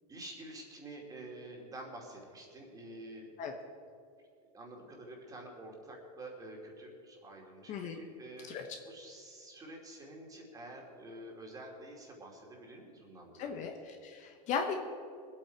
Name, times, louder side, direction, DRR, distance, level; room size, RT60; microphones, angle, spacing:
voice 1, 0.1-3.3 4.5-13.5, right 1 dB, 15° right, 0 dB, 2.7 m, -48 dB
voice 2, 7.7-8.0 8.5-8.6 13.4-14.7, left 6 dB, 35° left, 4 dB, 1.1 m, -37 dB
20.0 x 8.7 x 4.6 m, 2.4 s
supercardioid pair, 135°, 20 cm